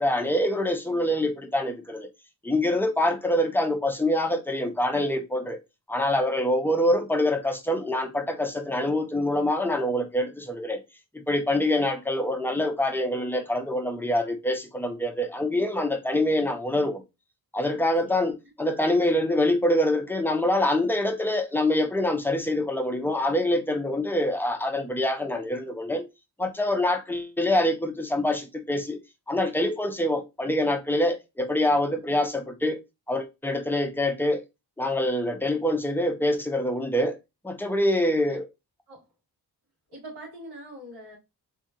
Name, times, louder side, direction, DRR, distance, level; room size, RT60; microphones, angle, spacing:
voice 1, 0.0-2.1 2.4-5.6 5.9-10.8 11.1-17.0 17.5-26.1 26.4-29.0 29.3-32.8 33.1-34.4 34.8-37.2 37.4-38.4, left 1 dB, 5° left, 1.0 m, -25 dB
voice 2, 17.8-18.3 38.0-38.4 38.9-39.0 39.9-41.2, right 1 dB, 85° right, 2.5 m, -44 dB
3.7 x 3.4 x 2.7 m
cardioid pair, 60°, 39 cm